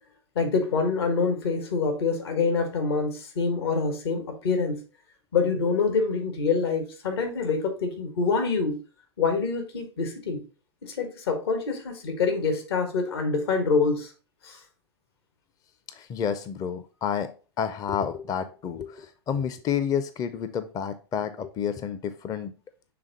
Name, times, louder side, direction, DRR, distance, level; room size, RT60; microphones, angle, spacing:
voice 1, 0.3-4.8 5.3-8.8 9.2-10.4 10.8-14.1 14.4-14.6, left 4 dB, 70° left, 1.6 m, -26 dB
voice 2, 15.9-22.5, left 8 dB, 25° left, 0.5 m, -30 dB
6.8 x 3.5 x 4.0 m
hypercardioid pair, 100°, 13 cm